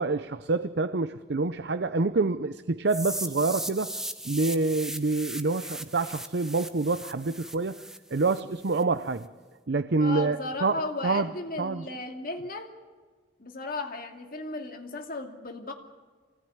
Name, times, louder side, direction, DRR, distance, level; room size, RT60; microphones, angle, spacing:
voice 1, 0.0-3.9 4.2-7.8 8.1-9.3 9.7-11.3 11.6-11.8, right 3 dB, 60° right, 11 dB, 0.6 m, -27 dB
sound 1, 2.9-8.8, right 1 dB, 5° right, 1.0 m, -38 dB
voice 2, 10.0-12.7 13.4-15.7, left 2 dB, 50° left, 4 dB, 2.5 m, -35 dB
24.5 x 17.5 x 9.8 m, 1.4 s
head